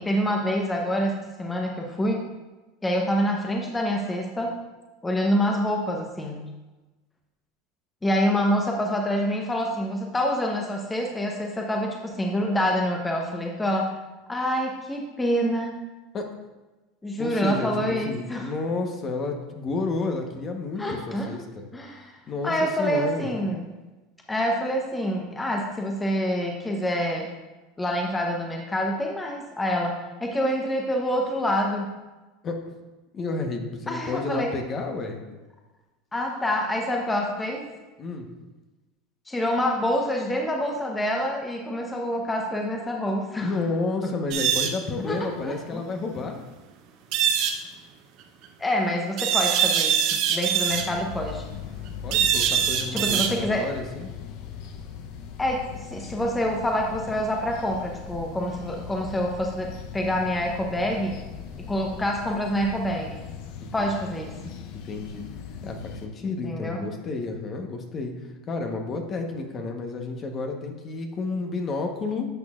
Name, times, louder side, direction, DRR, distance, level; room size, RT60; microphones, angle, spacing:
voice 1, 0.0-2.2 2.8-4.6 5.0-6.5 8.0-13.9 14.3-15.7 17.0-18.5 20.8-21.3 21.7-22.2 22.4-23.6 24.3-27.3 27.8-31.9 33.9-34.5 36.1-37.7 39.3-43.6 44.0-44.1 45.0-45.8 48.6-51.4 52.9-53.7 55.4-61.2 61.6-63.2 63.7-64.3 66.2-66.9, equal, 15° left, 1 dB, 1.0 m, -26 dB
voice 2, 17.2-21.6 22.3-23.3 32.4-32.6 33.1-35.2 38.0-38.3 43.4-46.4 52.0-54.1 63.6-64.1 64.7-65.3 65.6-68.1 68.5-72.3, left 3 dB, 35° left, 4 dB, 1.1 m, -31 dB
sound 1, 44.3-44.7 47.1-47.5 49.2-50.8 52.1-53.3, right 8 dB, 55° right, 0.8 m, -23 dB
sound 2, 50.7-66.1, left 7 dB, 60° left, 0.8 m, -39 dB
10.0 x 6.2 x 2.5 m, 1.1 s
supercardioid pair, 105°, 0 cm